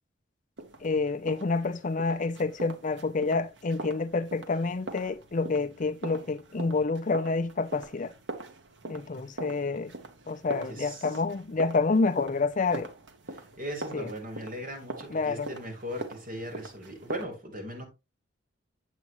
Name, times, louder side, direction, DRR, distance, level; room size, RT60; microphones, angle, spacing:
sound 1, 0.6-17.2, right 2 dB, 70° right, 1.4 m, -43 dB
voice 1, 0.8-8.1 8.9-9.9 10.3-12.9 13.9-14.1 15.1-15.5, left 3 dB, 45° left, 0.6 m, -28 dB
voice 2, 9.7-10.0 10.7-11.2 13.3-17.9, equal, 50° right, 4.1 m, -39 dB
8.4 x 8.3 x 3.0 m
head